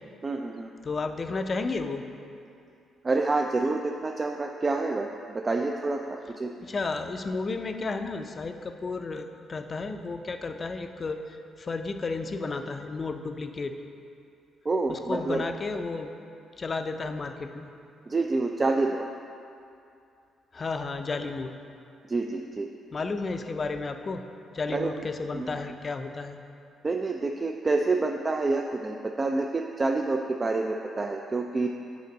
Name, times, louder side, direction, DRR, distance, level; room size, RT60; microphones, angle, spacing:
voice 1, 0.2-0.7 3.0-6.6 14.7-15.4 18.1-19.1 22.1-22.7 24.7-25.0 25.3-25.5 26.8-31.7, right 3 dB, 30° right, 3 dB, 0.3 m, -28 dB
voice 2, 0.8-2.0 6.6-13.7 14.9-16.1 16.6-17.7 20.5-21.5 22.9-24.2 24.5-26.4, left 3 dB, 35° left, 7 dB, 0.4 m, -32 dB
6.6 x 4.4 x 5.1 m, 2.5 s
cardioid pair, 90°, 0 cm